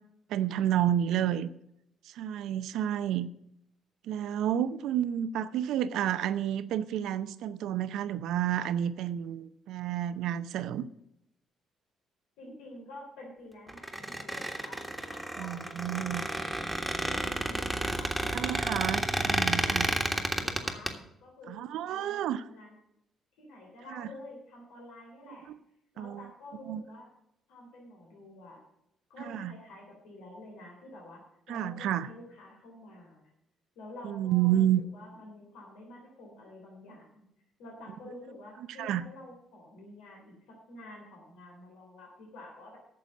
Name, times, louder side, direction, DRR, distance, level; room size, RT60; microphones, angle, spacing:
voice 1, 0.3-1.5 2.1-3.3 4.0-10.9 15.4-16.2 18.3-19.9 21.5-22.4 23.9-24.1 26.0-26.3 26.7-26.8 29.3-29.5 31.5-32.1 34.0-34.8 38.8-39.0, right 11 dB, 75° right, 0.6 m, -30 dB
voice 2, 12.4-18.8 19.1-21.6 21.9-22.7 23.4-25.5 25.9-27.1 27.5-28.6 29.1-31.2 31.5-33.3 33.7-37.2 37.6-42.8, left 1 dB, 85° left, 3.4 m, -49 dB
Squeak, 13.7-20.9, right 1 dB, 5° right, 1.6 m, -31 dB
9.3 x 6.9 x 7.7 m
supercardioid pair, 70°, 0 cm